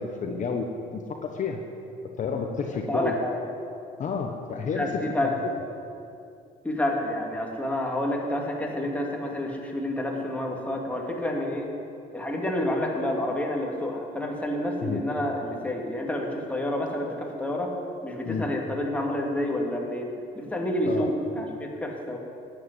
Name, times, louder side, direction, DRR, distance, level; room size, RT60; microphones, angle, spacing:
voice 1, 0.0-1.6 2.2-3.1 4.0-4.9 5.2-5.4 14.8-15.0 18.2-18.5 20.8-21.1, left 5 dB, 45° left, 3 dB, 1.3 m, -30 dB
voice 2, 2.9-3.4 4.6-5.3 6.6-11.7 12.1-17.7 18.0-20.1 20.4-22.2, left 1 dB, 10° left, -1 dB, 2.5 m, -29 dB
13.0 x 8.5 x 9.8 m, 2.6 s
cardioid pair, 110°, 17 cm